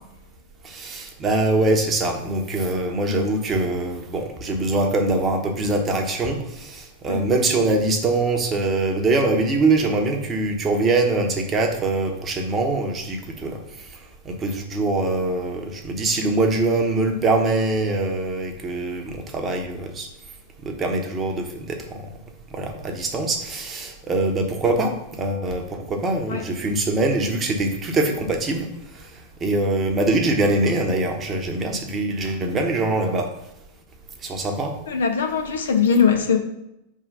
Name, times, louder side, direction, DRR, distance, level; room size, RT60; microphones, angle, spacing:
voice 1, 0.6-6.4 6.7-13.5 14.3-20.1 20.8-21.8 22.5-28.6 29.4-33.3 34.2-34.7, right 2 dB, 25° right, 3 dB, 1.1 m, -23 dB
voice 2, 34.9-36.4, left 6 dB, 65° left, 4 dB, 0.9 m, -20 dB
4.8 x 3.7 x 5.6 m, 0.85 s
figure-of-eight pair, 90°, 0 cm